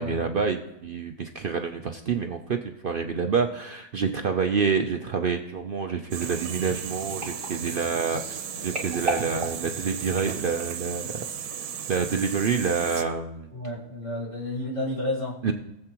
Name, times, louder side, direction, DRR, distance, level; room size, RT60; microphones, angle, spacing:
voice 1, 0.0-11.2 11.9-13.5 15.4-15.5, right 5 dB, 60° right, 5 dB, 0.5 m, -27 dB
sound 1, 5.9-10.9 11.5-11.7 12.0-12.1, right 2 dB, 20° right, 2.4 m, -37 dB
sound 2, 6.1-13.0, right 8 dB, 90° right, 1.3 m, -35 dB
voice 2, 13.5-15.5, left 1 dB, 55° left, -5 dB, 2.2 m, -31 dB
18.5 x 7.8 x 2.9 m, 0.90 s
omnidirectional pair, 1.5 m